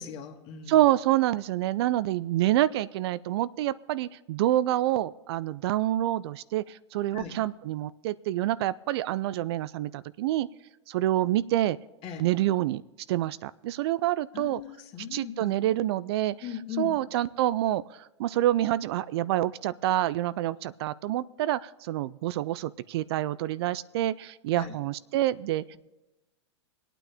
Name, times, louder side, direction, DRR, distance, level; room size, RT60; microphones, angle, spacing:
voice 1, 0.0-0.8 7.1-7.3 12.0-12.2 14.3-15.5 16.4-17.0 24.6-24.8, left 8 dB, 40° left, 3 dB, 2.1 m, -38 dB
voice 2, 0.7-10.5 10.9-11.8 12.2-12.8 13.1-14.6 15.1-16.4 16.8-25.8, right 14 dB, 60° right, 17 dB, 0.4 m, -27 dB
21.0 x 9.0 x 3.5 m, 0.99 s
hypercardioid pair, 120°, 15 cm